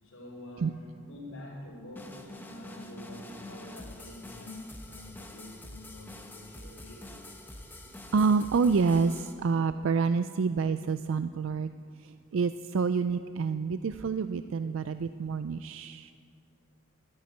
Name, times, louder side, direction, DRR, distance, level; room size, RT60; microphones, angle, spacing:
voice 1, 0.0-7.1, left 1 dB, 80° left, -7 dB, 3.7 m, -47 dB
sound 1, 2.0-9.3, left 1 dB, 10° left, 0.9 m, -46 dB
voice 2, 8.1-11.7 12.0-16.1, right 5 dB, 65° right, 11 dB, 0.4 m, -28 dB
12.5 x 10.5 x 9.5 m, 2.2 s
head